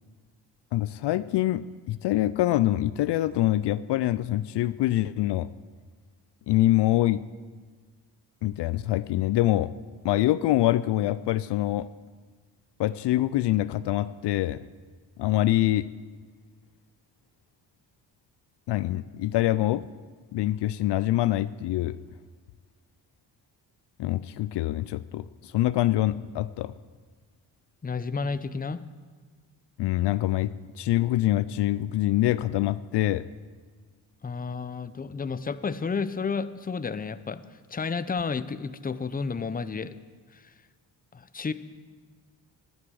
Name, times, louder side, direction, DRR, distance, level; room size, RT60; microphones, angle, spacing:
voice 1, 0.7-5.5 6.5-7.2 8.4-9.7 10.0-11.9 12.8-14.6 15.2-15.9 18.7-19.8 20.3-22.0 24.0-26.7 29.8-33.3, left 15 dB, 65° left, 16 dB, 0.5 m, -25 dB
voice 2, 27.8-28.8 34.2-39.9 40.3-40.5 41.1-41.5, left 5 dB, 20° left, 13 dB, 0.7 m, -31 dB
12.0 x 9.7 x 6.3 m, 1.5 s
supercardioid pair, 55°, 45 cm